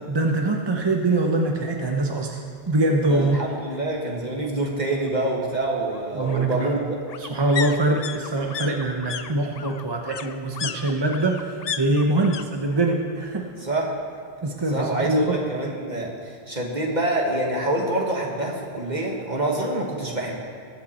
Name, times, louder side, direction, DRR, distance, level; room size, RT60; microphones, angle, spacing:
voice 1, 0.1-2.4 2.7-3.4 6.2-6.7 7.2-13.5 14.4-15.4, right 2 dB, 25° right, 2 dB, 0.8 m, -23 dB
sound 1, 1.5-1.6 2.0-2.1 2.4-3.4 4.7-12.4 12.7-13.3 13.5-14.6 14.9-15.0, left 8 dB, 50° left, 0.5 m, -36 dB
voice 2, 3.1-7.0 13.6-13.9 14.7-20.3, right 1 dB, 45° right, -1 dB, 1.5 m, -26 dB
21.0 x 7.6 x 4.3 m, 2.1 s
omnidirectional pair, 1.1 m